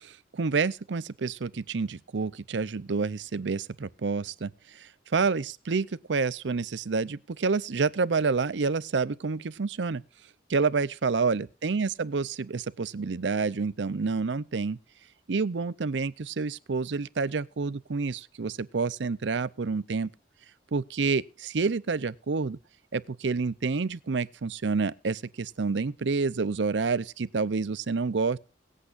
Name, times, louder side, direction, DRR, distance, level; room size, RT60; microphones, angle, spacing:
voice 1, 0.0-10.0 10.5-14.8 15.3-20.1 20.7-22.6 22.9-28.4, right 4 dB, 85° right, 0.6 m, -28 dB
23.5 x 8.3 x 2.5 m
head